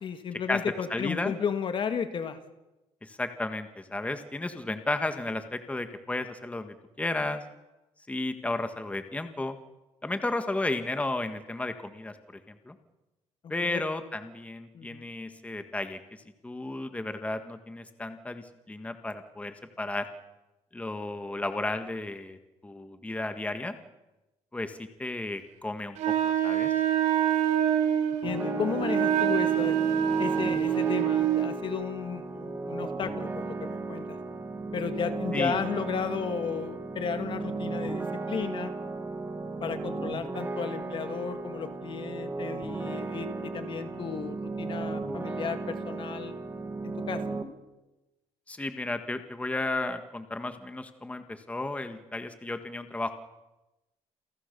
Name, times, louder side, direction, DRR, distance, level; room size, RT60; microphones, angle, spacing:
voice 1, 0.0-2.4 13.4-13.8 14.7-15.1 28.2-29.8 30.2-34.2 34.7-38.7 39.6-46.3 47.1-47.2, left 6 dB, 45° left, 9 dB, 1.9 m, -34 dB
voice 2, 0.9-1.3 3.0-7.4 8.1-9.6 10.0-12.7 13.5-16.0 16.4-20.1 20.7-22.4 22.6-23.7 24.5-26.7 35.3-35.5 48.5-53.1, left 2 dB, 10° left, 8 dB, 1.7 m, -33 dB
Wind instrument woodwind instrument, 26.0-31.5, right 9 dB, 75° right, 3.5 m, -25 dB
sound 1, 28.2-47.4, right 3 dB, 20° right, 2.7 m, -35 dB
28.5 x 16.0 x 6.9 m, 1.0 s
cardioid pair, 115°, 12 cm